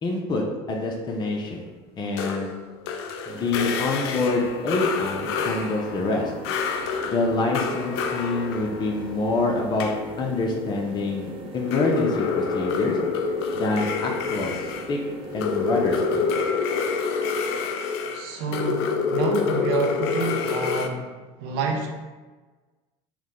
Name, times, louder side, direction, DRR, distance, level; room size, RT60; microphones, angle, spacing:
voice 1, 0.0-1.6 2.0-2.5 3.3-6.3 7.0-9.9 10.2-13.0 13.5-15.0 15.3-16.3, left 3 dB, 35° left, 0 dB, 0.7 m, -26 dB
sound 1, 2.2-10.6 11.6-20.9, left 5 dB, 85° left, 0.4 m, -28 dB
sound 2, 3.3-16.5, right 3 dB, 45° right, 0.8 m, -41 dB
voice 2, 18.1-21.1 21.4-21.9, right 4 dB, 80° right, 2 dB, 0.7 m, -28 dB
4.6 x 2.2 x 3.7 m, 1.3 s
supercardioid pair, 90°, 13 cm